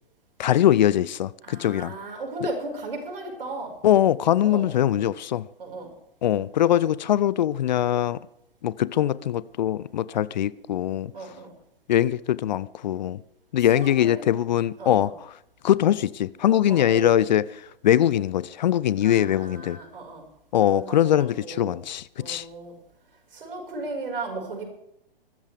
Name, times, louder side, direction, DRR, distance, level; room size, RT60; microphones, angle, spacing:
voice 1, 0.4-1.9 2.4-2.5 3.8-5.5 6.2-8.2 8.6-11.1 11.9-13.2 13.5-15.3 15.6-19.8 20.5-22.4, left 11 dB, 50° left, 0.5 m, -22 dB
voice 2, 1.4-3.7 4.4-4.7 5.6-5.9 11.1-11.5 13.5-14.2 14.8-15.0 16.5-17.1 19.0-20.3 20.7-21.8 22.2-22.8 23.3-24.6, right 2 dB, 65° right, 5.5 m, -36 dB
22.5 x 13.5 x 3.5 m
figure-of-eight pair, 115°, 30 cm